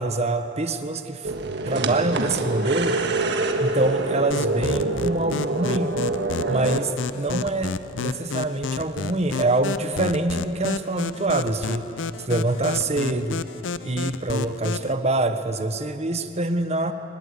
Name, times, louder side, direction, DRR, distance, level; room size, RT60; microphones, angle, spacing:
voice 1, 0.0-1.3 1.6-3.0 3.6-6.0 6.5-11.9 12.3-13.4 13.8-16.9, right 2 dB, 35° right, 8 dB, 1.2 m, -25 dB
sound 1, 1.2-6.8, right 2 dB, 65° right, 1.6 m, -26 dB
sound 2, 4.3-14.9, left 4 dB, 75° left, 0.6 m, -31 dB
24.0 x 20.5 x 8.5 m, 2.9 s
head